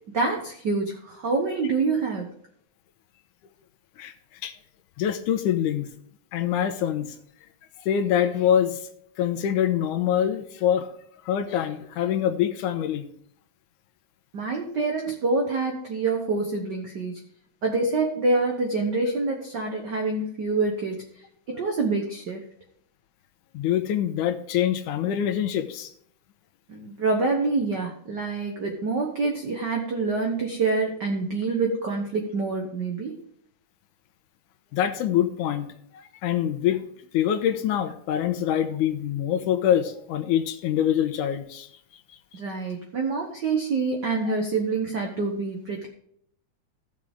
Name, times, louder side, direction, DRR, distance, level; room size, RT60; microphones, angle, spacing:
voice 1, 0.1-2.3 14.3-17.2 17.6-21.1 21.5-22.4 26.7-33.2 42.3-45.9, right 3 dB, 60° right, 1 dB, 1.2 m, -26 dB
voice 2, 5.0-5.9 6.3-7.1 7.8-8.8 9.2-10.9 11.3-13.1 23.5-25.9 34.7-35.7 35.9-36.8 37.1-41.7, left 10 dB, 85° left, 9 dB, 2.3 m, -25 dB
15.5 x 6.4 x 3.5 m, 0.69 s
omnidirectional pair, 3.5 m